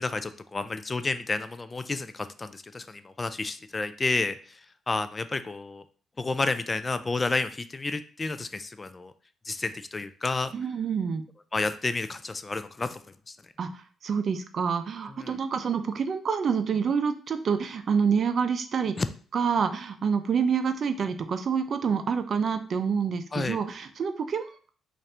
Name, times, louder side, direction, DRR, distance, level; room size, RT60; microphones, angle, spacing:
voice 1, 0.0-4.4 4.9-5.8 6.2-9.1 9.5-10.5 11.5-13.0 13.3-13.4 15.2-15.3 19.0-19.1 23.3-23.6, left 3 dB, 25° left, 11 dB, 0.3 m, -30 dB
voice 2, 10.5-11.2 13.6-18.9 19.3-24.7, right 6 dB, 50° right, 9 dB, 0.5 m, -27 dB
4.1 x 2.5 x 3.3 m, 0.41 s
cardioid pair, 90°, 0 cm